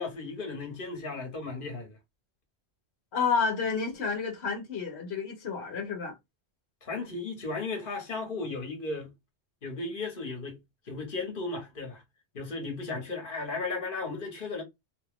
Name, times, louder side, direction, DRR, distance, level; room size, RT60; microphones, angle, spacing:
voice 1, 0.0-2.0 6.8-9.1 9.6-10.6 10.9-12.0 12.3-14.6, left 3 dB, 55° left, 1.4 m, -35 dB
voice 2, 3.1-6.2, left 5 dB, 75° left, 1.2 m, -30 dB
2.8 x 2.3 x 3.5 m
omnidirectional pair, 1.1 m